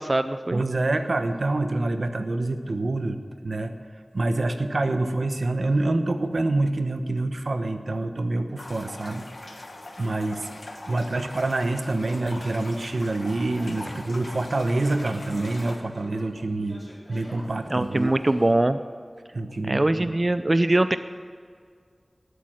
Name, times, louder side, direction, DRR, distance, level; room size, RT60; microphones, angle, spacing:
voice 1, 0.0-0.6 17.7-18.8 19.6-21.0, right 1 dB, 40° right, 11 dB, 0.4 m, -22 dB
voice 2, 0.5-3.7 4.1-9.6 10.0-10.5 10.9-16.8 17.1-18.1 19.3-20.2, right 2 dB, 80° right, 8 dB, 0.9 m, -26 dB
sound 1, 8.6-15.8, left 2 dB, 80° left, 1.6 m, -42 dB
sound 2, 12.8-18.5, equal, 5° left, 4.4 m, -46 dB
19.0 x 8.3 x 6.4 m, 2.1 s
wide cardioid pair, 55°, 0 cm